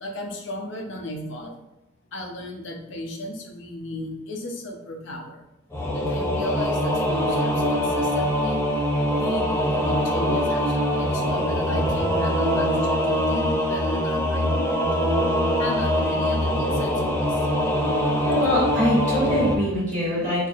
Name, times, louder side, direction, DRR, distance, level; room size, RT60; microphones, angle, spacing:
voice 1, 0.0-1.5 2.1-5.4 5.9-8.6 9.2-15.1 15.6-17.4, left 1 dB, 65° left, 2 dB, 0.6 m, -34 dB
Singing / Musical instrument, 5.7-19.6, equal, 10° left, 0.4 m, -23 dB
voice 2, 18.2-20.5, equal, 40° right, -9 dB, 1.4 m, -23 dB
4.5 x 2.5 x 2.4 m, 0.89 s
head